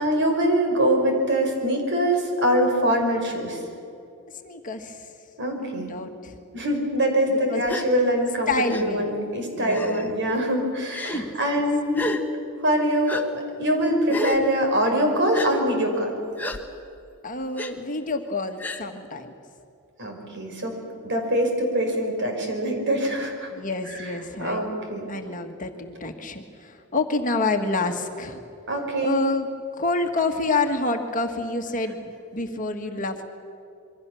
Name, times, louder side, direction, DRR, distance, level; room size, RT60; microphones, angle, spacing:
voice 1, 0.0-3.6 5.4-6.0 6.5-12.1 12.6-13.3 13.6-16.2 20.0-20.8 21.0-23.5 23.9-24.1 24.4-25.1 28.7-29.2, equal, 55° right, 3 dB, 5.1 m, -23 dB
voice 2, 4.4-5.1 5.6-6.4 7.3-7.6 8.5-9.1 9.5-10.2 11.1-11.3 17.2-19.3 23.5-24.8 25.1-28.4 29.0-29.5 29.8-33.3, left 3 dB, 35° left, 5 dB, 1.7 m, -28 dB
Gasp, 7.7-7.9 8.7-8.8 9.7-10.1 10.9-11.2 11.9-12.2 13.1-13.2 14.1-14.4 15.3-15.5 16.4-16.6 17.6-17.7 18.6-18.8, left 1 dB, 10° left, 1.5 m, -29 dB
27.0 x 23.5 x 7.1 m, 2.6 s
head